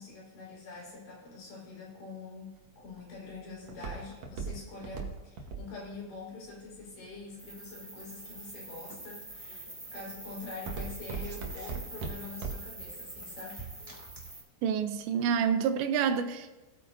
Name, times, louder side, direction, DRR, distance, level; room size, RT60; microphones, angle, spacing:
voice 1, 0.0-13.7, left 3 dB, 90° left, 6.4 m, -45 dB
Walk footsteps, 2.5-7.7 8.3-8.7 9.2-9.6 9.9-12.8 13.2-13.3, right 5 dB, 65° right, 1.7 m, -39 dB
sound 1, 7.4-14.4, right 2 dB, 10° right, 1.2 m, -45 dB
voice 2, 14.6-16.6, right 7 dB, 85° right, 3.0 m, -28 dB
18.5 x 8.9 x 2.7 m
omnidirectional pair, 5.0 m